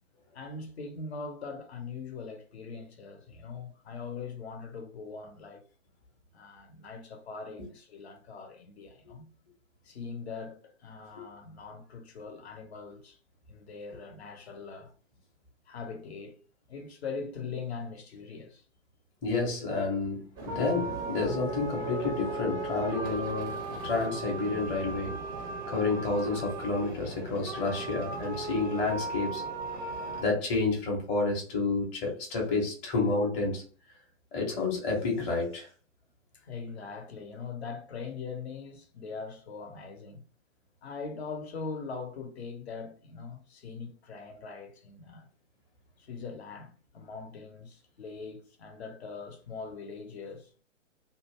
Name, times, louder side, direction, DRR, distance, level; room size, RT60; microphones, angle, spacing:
voice 1, 0.3-5.6 6.3-9.3 9.8-13.2 13.5-14.9 15.7-16.4 16.7-18.6 36.3-40.2 40.8-45.3 46.0-50.5, left 4 dB, 55° left, 0.8 m, -41 dB
voice 2, 19.2-25.2 25.7-29.4 30.2-33.6 34.3-35.7, left 3 dB, 15° left, 0.7 m, -30 dB
sound 1, 20.4-30.2, right 3 dB, 20° right, 0.4 m, -37 dB
2.6 x 2.1 x 3.0 m
figure-of-eight pair, 120°, 39 cm